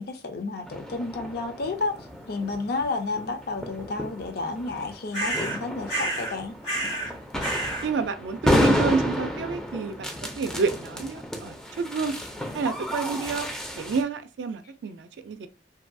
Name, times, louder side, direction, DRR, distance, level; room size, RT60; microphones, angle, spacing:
voice 1, 0.0-6.5, left 3 dB, 60° left, 0.5 m, -31 dB
sound 1, 0.7-14.0, equal, 5° left, 0.4 m, -31 dB
sound 2, 5.1-5.6 5.9-6.4 6.6-7.1 7.4-7.9, right 2 dB, 75° left, 1.4 m, -29 dB
voice 2, 7.8-10.1 10.4-12.2 12.5-13.5 13.8-15.5, right 4 dB, 70° right, 0.4 m, -29 dB
2.7 x 2.3 x 2.5 m
head